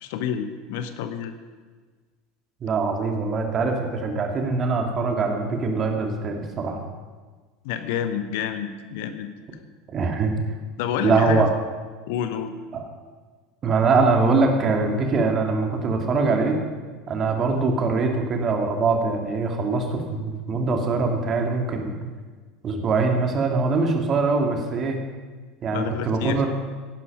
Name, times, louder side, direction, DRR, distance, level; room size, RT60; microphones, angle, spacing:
voice 1, 0.0-1.3 7.6-9.3 10.8-11.5 12.1-12.5 25.7-26.4, left 8 dB, 60° left, 10 dB, 1.0 m, -28 dB
voice 2, 2.6-6.8 9.9-10.4 11.0-11.5 12.7-12.8 13.6-16.6 17.1-22.0 22.6-25.0 25.6-26.5, right 4 dB, 35° right, 3 dB, 2.4 m, -23 dB
16.0 x 11.0 x 5.4 m, 1.4 s
figure-of-eight pair, 75°, 0 cm